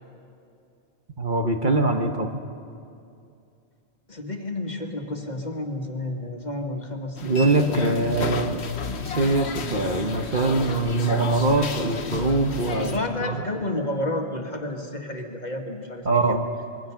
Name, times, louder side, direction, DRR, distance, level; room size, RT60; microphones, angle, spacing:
voice 1, 1.2-2.3 7.2-8.6 9.0-12.9 13.2-13.4 16.0-16.5, right 2 dB, 45° right, 4 dB, 1.3 m, -23 dB
voice 2, 4.1-7.8 12.8-16.4, left 1 dB, 40° left, 2 dB, 1.9 m, -31 dB
sound 1, 7.2-13.0, left 5 dB, 70° left, 1.3 m, -32 dB
26.0 x 22.5 x 5.8 m, 2.5 s
omnidirectional pair, 1.2 m